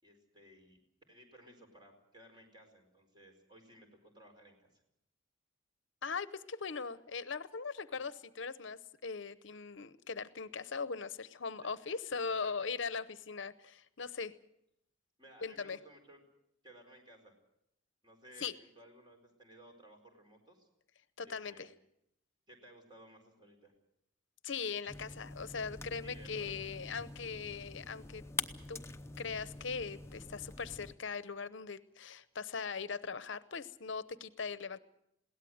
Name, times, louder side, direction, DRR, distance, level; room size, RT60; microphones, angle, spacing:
voice 1, 0.0-0.8 1.1-4.8 7.9-8.0 11.6-11.7 12.4-12.5 15.2-16.2 16.6-17.4 18.0-18.5 18.7-20.7 21.2-21.7 22.5-23.7 26.0-26.5, right 1 dB, 25° right, 3 dB, 4.7 m, -58 dB
voice 2, 6.0-14.3 15.4-15.8 18.4-18.5 21.2-21.7 24.4-28.2 28.7-28.8 29.2-34.8, left 5 dB, 65° left, 14 dB, 0.8 m, -40 dB
sound 1, 24.9-30.9, left 3 dB, 15° left, 0.8 m, -45 dB
21.5 x 17.5 x 7.9 m, 0.78 s
head